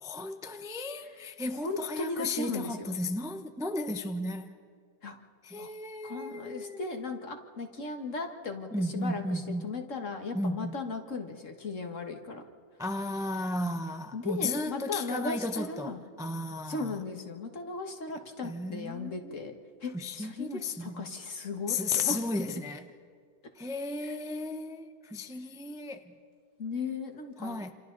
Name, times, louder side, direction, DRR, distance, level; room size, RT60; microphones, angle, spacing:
voice 1, 0.0-4.5 5.4-6.9 8.7-9.6 10.3-10.7 12.8-16.9 18.4-19.4 19.9-21.1 21.7-22.9 23.6-26.1 27.4-27.7, left 2 dB, 5° right, 7 dB, 0.4 m, -34 dB
voice 2, 1.5-3.0 5.0-5.2 5.6-5.7 6.0-12.4 14.1-16.0 16.7-19.5 19.8-22.3 24.0-24.2 26.6-27.6, left 3 dB, 45° left, 4 dB, 2.0 m, -37 dB
28.0 x 27.5 x 4.0 m, 2.2 s
omnidirectional pair, 1.8 m